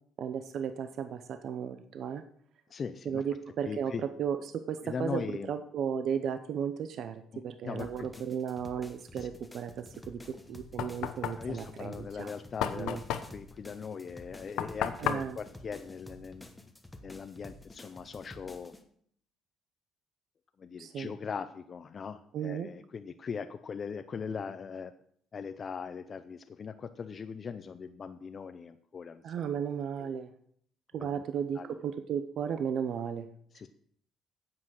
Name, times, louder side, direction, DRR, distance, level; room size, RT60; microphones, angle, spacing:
voice 1, 0.2-2.2 3.1-12.3 12.7-13.0 15.0-15.4 20.8-21.1 22.3-22.7 29.2-30.3 30.9-33.3, right 8 dB, 50° right, 9 dB, 0.7 m, -35 dB
voice 2, 2.7-3.2 3.7-4.0 4.8-5.5 7.3-8.1 9.2-9.3 11.4-13.0 13.3-16.5 17.0-18.8 20.6-24.9 25.3-29.3 30.0-30.1 31.0-31.2 31.6-31.8 33.5-33.7, left 6 dB, 30° left, 9 dB, 0.5 m, -40 dB
sound 1, 7.8-18.8, left 1 dB, 5° left, 1.0 m, -51 dB
Knock, 10.3-16.7, left 10 dB, 85° left, 0.9 m, -36 dB
9.6 x 7.8 x 6.3 m, 0.63 s
cardioid pair, 165°, 0 cm